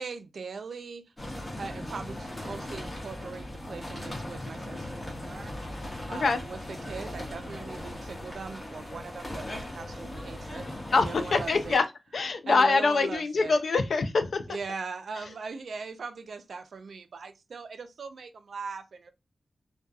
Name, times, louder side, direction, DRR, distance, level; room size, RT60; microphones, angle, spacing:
voice 1, 0.0-5.5 5.8-10.7 10.9-11.8 12.5-13.6 14.5-19.1, right 4 dB, 80° right, 0.3 m, -40 dB
sound 1, 1.2-11.8, left 1 dB, 25° left, 0.9 m, -39 dB
voice 2, 6.1-6.4 10.9-11.8 12.1-14.4, left 4 dB, 75° left, 0.4 m, -24 dB
2.6 x 2.2 x 2.3 m
wide cardioid pair, 100°, 0 cm